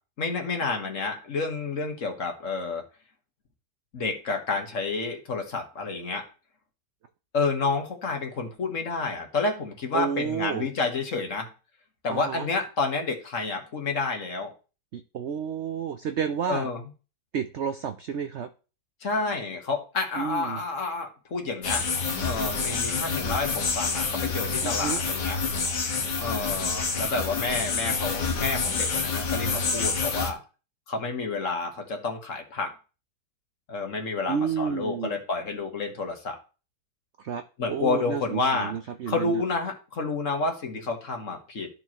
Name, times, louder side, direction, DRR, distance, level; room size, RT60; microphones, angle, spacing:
voice 1, 0.2-2.8 3.9-6.2 7.3-11.5 12.0-14.5 16.5-16.8 19.0-21.8 22.2-25.4 26.2-30.4 30.9-32.7 33.7-36.4 37.6-38.7 39.1-41.7, left 3 dB, 50° left, 3 dB, 1.7 m, -29 dB
voice 2, 9.9-10.7 12.1-12.5 14.9-16.7 17.3-18.5 20.2-20.6 24.6-25.0 34.3-35.2 37.2-37.4 37.7-39.4, right 7 dB, 75° right, 8 dB, 0.6 m, -30 dB
sound 1, 21.6-30.3, left 4 dB, 75° left, 1.9 m, -28 dB
13.5 x 4.6 x 2.9 m, 0.34 s
omnidirectional pair, 1.9 m